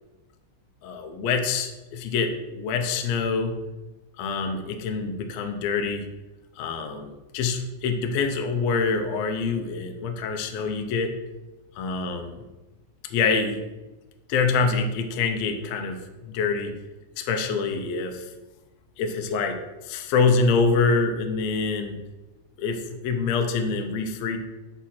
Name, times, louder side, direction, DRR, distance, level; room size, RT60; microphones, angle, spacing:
voice 1, 0.8-3.5 4.2-6.1 6.6-11.2 11.8-12.4 13.1-13.6 14.3-16.7 17.2-18.3 19.0-22.0 22.6-24.4, left 4 dB, 75° left, 5 dB, 1.6 m, -25 dB
5.7 x 4.2 x 5.9 m, 1.1 s
omnidirectional pair, 3.6 m